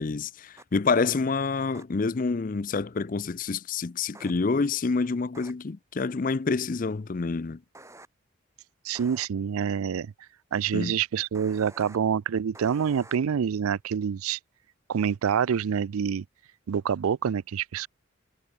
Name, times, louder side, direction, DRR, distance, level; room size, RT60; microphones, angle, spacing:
voice 1, 0.0-7.6 10.7-11.0, left 4 dB, 40° left, 0.4 m, -27 dB
sound 1, 0.6-0.7 1.7-1.8 4.1-4.3 5.3-5.5 7.7-8.1 8.9-9.3 11.3-12.0 12.5-13.2, right 2 dB, 15° right, 5.2 m, -48 dB
voice 2, 8.8-10.1 10.5-14.4 14.9-16.2 16.7-17.9, right 7 dB, 90° right, 0.4 m, -27 dB
head